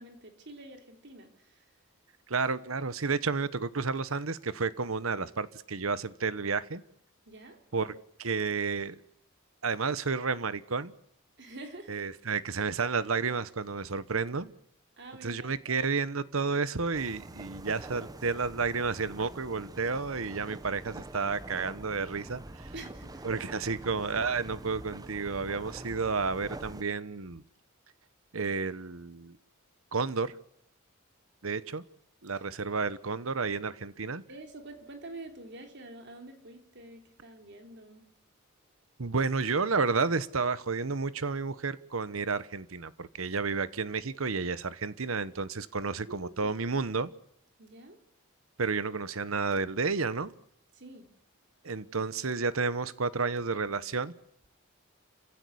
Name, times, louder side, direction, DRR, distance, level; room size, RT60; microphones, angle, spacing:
voice 1, 0.0-1.7 7.3-7.7 11.4-12.0 15.0-15.8 22.7-23.3 32.3-32.4 32.8-32.9 34.3-38.1 46.1-46.6 47.6-48.0 50.7-51.2, right 2 dB, 55° right, 3.5 m, -47 dB
voice 2, 2.3-6.8 7.7-9.0 9.6-10.9 11.9-14.5 15.2-22.7 23.2-27.4 28.3-29.4 29.9-30.3 31.4-31.8 32.2-34.2 39.0-47.1 48.6-50.3 51.6-54.1, right 4 dB, 75° right, 1.1 m, -31 dB
sound 1, 16.9-26.8, right 1 dB, 20° right, 0.9 m, -45 dB
29.0 x 16.0 x 8.5 m
head